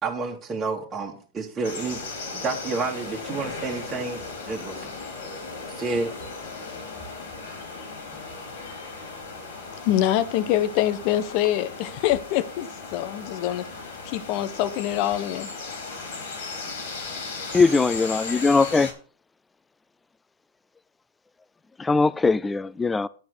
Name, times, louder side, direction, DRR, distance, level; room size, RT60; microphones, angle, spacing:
voice 1, 0.0-2.0 2.3-4.2 4.5-4.9 5.7-6.1, right 4 dB, 20° right, 2.0 m, -30 dB
sound 1, 1.6-18.9, left 4 dB, 70° left, 4.4 m, -37 dB
voice 2, 9.8-13.6 14.0-15.5, left 12 dB, 50° left, 1.1 m, -25 dB
voice 3, 17.5-18.9 21.8-23.1, left 4 dB, 10° left, 0.4 m, -20 dB
11.0 x 4.6 x 7.8 m
hypercardioid pair, 110°, 0 cm